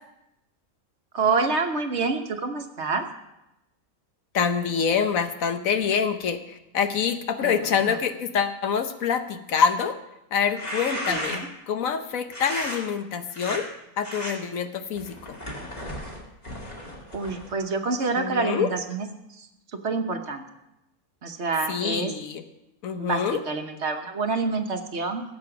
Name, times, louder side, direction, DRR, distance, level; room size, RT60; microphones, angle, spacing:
voice 1, 1.1-3.0 7.4-8.0 11.1-11.5 17.1-19.1 19.4-19.5 19.8-20.4 21.2-22.1 23.0-25.2, right 4 dB, 55° right, 5 dB, 1.3 m, -27 dB
voice 2, 4.3-10.0 10.3-13.7 14.0-15.4 18.2-18.7 21.7-22.4 22.8-23.4, left 6 dB, 70° left, 9 dB, 1.3 m, -26 dB
sound 1, 10.5-11.6 12.3-12.8 13.3-13.6 14.0-14.3 15.0-17.5, equal, 30° left, 2.5 m, -34 dB
16.0 x 7.9 x 5.9 m, 0.90 s
omnidirectional pair, 1.5 m